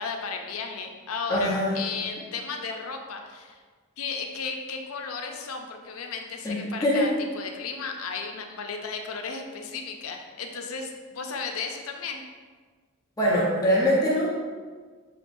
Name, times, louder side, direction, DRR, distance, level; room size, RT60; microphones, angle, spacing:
voice 1, 0.0-3.6 4.0-12.2, left 5 dB, 80° left, 3 dB, 0.5 m, -34 dB
voice 2, 1.3-1.8 6.4-7.1 13.2-14.3, equal, 15° left, -6 dB, 0.8 m, -23 dB
6.4 x 3.0 x 2.6 m, 1.5 s
head